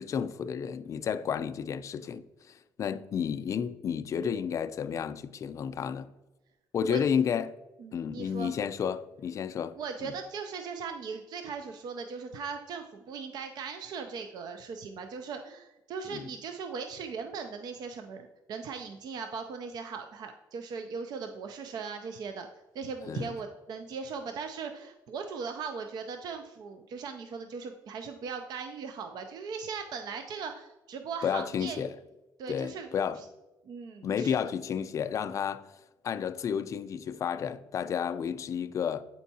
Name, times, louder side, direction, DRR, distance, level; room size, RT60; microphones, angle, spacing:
voice 1, 0.0-6.1 6.7-7.5 7.9-9.8 10.0-10.1 16.1-16.3 23.1-23.3 31.2-31.9 32.5-33.2 34.0-35.7 36.0-39.0, left 7 dB, 45° left, 0.3 m, -31 dB
voice 2, 7.8-8.5 9.8-22.5 22.7-31.8 32.4-32.9 33.2-33.3 33.7-34.4, right 5 dB, 60° right, 0.5 m, -39 dB
8.2 x 4.4 x 2.7 m
cardioid pair, 120°, 8 cm